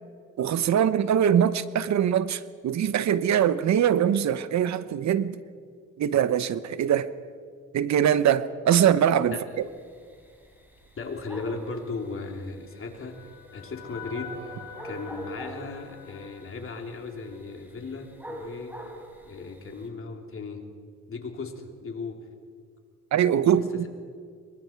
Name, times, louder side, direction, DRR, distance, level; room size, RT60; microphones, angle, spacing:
voice 1, 0.4-5.4 6.0-7.1 7.7-9.4 23.1-23.9, right 9 dB, 65° right, 14 dB, 0.9 m, -22 dB
sound 1, 9.5-19.9, right 1 dB, 5° right, 4.7 m, -46 dB
voice 2, 11.0-14.5 14.8-18.8 19.3-20.6 21.1-22.2 23.5-23.9, left 4 dB, 45° left, 3 dB, 3.4 m, -37 dB
sound 2, 12.3-17.6, left 4 dB, 75° left, 5.5 m, -45 dB
26.0 x 23.0 x 4.7 m, 2.1 s
cardioid pair, 90°, 30 cm